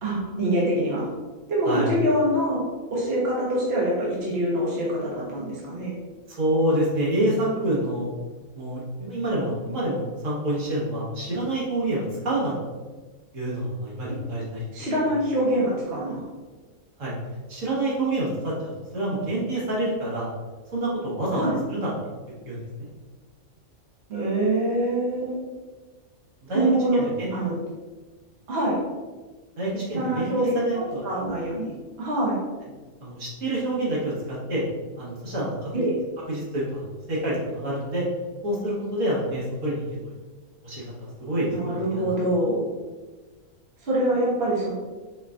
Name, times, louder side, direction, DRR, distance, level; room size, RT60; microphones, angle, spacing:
voice 1, 0.0-1.1 1.5-2.6 2.9-6.0 14.7-16.2 21.3-21.5 24.1-25.4 26.5-27.6 28.5-28.8 29.9-31.7 32.0-32.4 35.7-35.9 41.5-42.7 43.8-44.7, right 1 dB, 50° right, -6 dB, 1.2 m, -25 dB
voice 2, 6.3-8.1 8.5-12.5 13.3-14.6 17.0-17.1 17.5-20.3 20.7-21.4 21.7-22.1 22.4-22.9 26.4-26.7 26.9-27.3 29.6-31.0 33.0-34.6 35.0-35.9 36.3-38.1 38.4-39.8 40.6-42.1, right 1 dB, 70° right, -6 dB, 1.6 m, -27 dB
4.5 x 3.9 x 2.4 m, 1.3 s
omnidirectional pair, 1.4 m